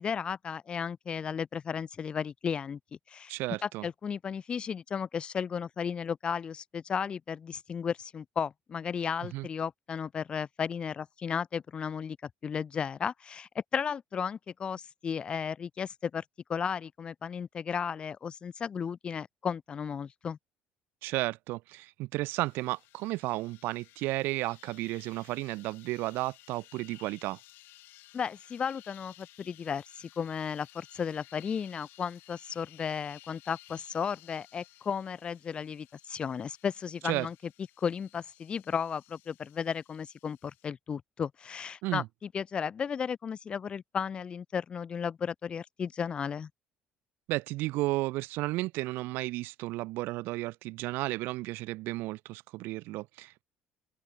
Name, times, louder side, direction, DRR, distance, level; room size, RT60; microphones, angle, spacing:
voice 1, 0.0-2.8 3.1-3.3 3.6-16.2 16.5-20.4 28.1-37.3 37.8-42.0 42.3-46.5, left 7 dB, 30° left, 0.6 m, -34 dB
voice 2, 3.3-3.9 9.3-9.5 21.0-27.4 37.0-37.3 41.8-42.1 47.3-53.4, right 20 dB, 80° right, 0.4 m, -33 dB
sound 1, 22.4-40.7, left 18 dB, 75° left, 3.0 m, -57 dB
open air
cardioid pair, 155°, 4 cm